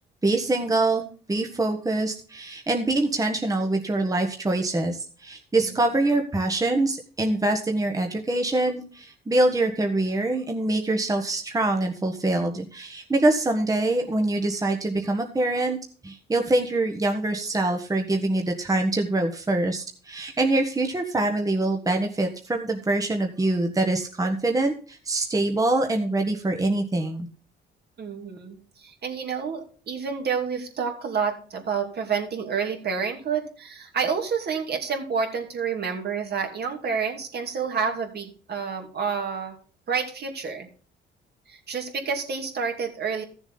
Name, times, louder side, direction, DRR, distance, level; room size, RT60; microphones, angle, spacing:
voice 1, 0.2-15.8 16.0-27.3, right 2 dB, 15° right, 3 dB, 1.3 m, -24 dB
voice 2, 28.0-39.5 39.9-40.7 41.5-43.2, right 6 dB, 55° right, 3 dB, 2.7 m, -29 dB
14.0 x 7.1 x 3.9 m, 0.40 s
cardioid pair, 90°, 20 cm